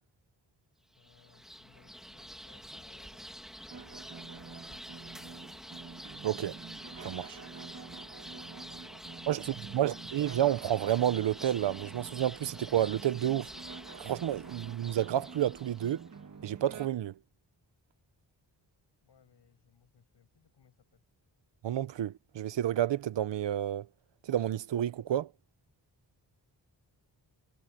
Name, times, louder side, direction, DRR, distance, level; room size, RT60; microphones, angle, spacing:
voice 1, 0.9-5.6 8.0-9.8 19.0-21.0, left 7 dB, 75° left, 8.0 m, -65 dB
sound 1, 0.9-16.1, equal, ahead, 2.2 m, -48 dB
sound 2, 3.7-16.9, right 5 dB, 45° right, 1.8 m, -48 dB
voice 2, 6.2-6.6 7.0-7.4 9.3-9.4 9.7-13.5 14.0-16.1 16.4-17.1 21.6-23.9 24.3-25.3, right 11 dB, 85° right, 0.8 m, -30 dB
wide cardioid pair, 180°, 42 cm